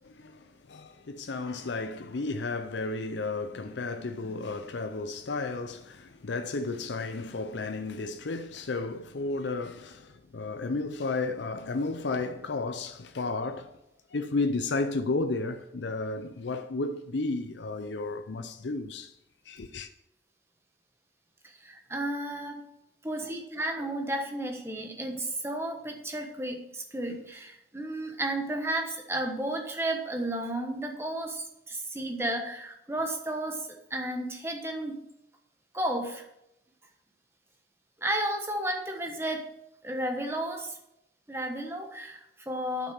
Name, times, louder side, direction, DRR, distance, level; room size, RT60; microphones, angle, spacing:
voice 1, 0.0-13.8 14.1-19.1 19.5-19.9, left 3 dB, 85° left, 0.6 m, -33 dB
voice 2, 21.6-22.6 23.0-35.0 35.7-36.2 38.0-39.5 39.8-40.8 41.3-42.9, right 1 dB, 15° right, 1.2 m, -33 dB
8.5 x 6.1 x 6.0 m
head